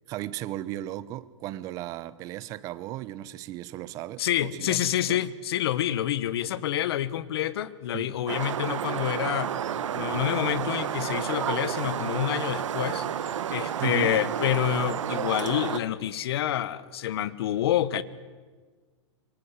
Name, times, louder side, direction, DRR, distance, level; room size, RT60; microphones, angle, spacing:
voice 1, 0.1-5.2 7.9-8.1 13.7-14.2, right 14 dB, 20° right, 0.7 m, -36 dB
voice 2, 4.2-9.5 9.9-18.0, left 11 dB, 55° left, 1.2 m, -28 dB
sound 1, 8.3-15.8, right 9 dB, 80° right, 1.6 m, -31 dB
27.0 x 24.5 x 8.2 m
hypercardioid pair, 170°, 16 cm